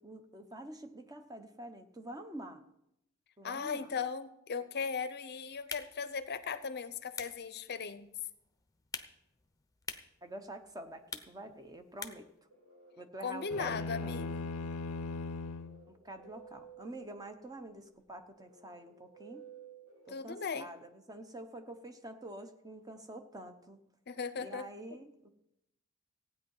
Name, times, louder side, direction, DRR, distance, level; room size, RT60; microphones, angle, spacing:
voice 1, 0.0-2.6 3.4-3.9 10.2-12.3 13.0-14.5 15.9-19.5 20.1-23.8 24.4-25.3, right 1 dB, 15° right, 7 dB, 1.0 m, -47 dB
voice 2, 3.4-8.1 13.2-14.5 20.1-20.7 24.1-24.7, left 5 dB, 50° left, 13 dB, 0.7 m, -38 dB
sound 1, 5.5-12.4, left 5 dB, 15° left, 0.8 m, -49 dB
sound 2, 12.1-20.8, right 7 dB, 85° right, 6.1 m, -56 dB
sound 3, 13.5-15.8, left 3 dB, 85° left, 0.6 m, -38 dB
15.5 x 9.3 x 5.6 m, 0.84 s
head